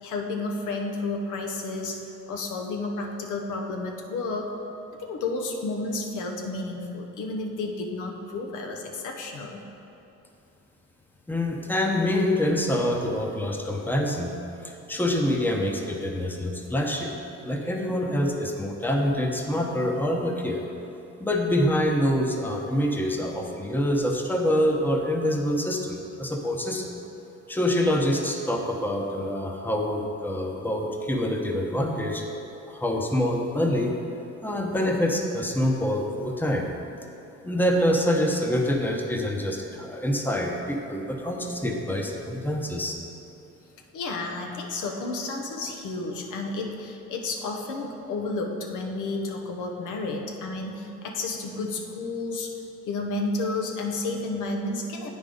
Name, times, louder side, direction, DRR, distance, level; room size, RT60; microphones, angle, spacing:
voice 1, 0.0-2.0 2.3-4.5 5.0-9.6 43.9-52.5 52.9-55.1, left 3 dB, 85° left, 2 dB, 0.8 m, -31 dB
voice 2, 11.3-14.4 14.6-17.1 17.4-20.6 21.2-26.9 27.5-32.2 32.7-34.0 34.4-36.7 37.4-43.0, left 1 dB, 5° left, 1 dB, 0.8 m, -26 dB
8.4 x 5.3 x 3.8 m, 2.9 s
cardioid pair, 90°, 30 cm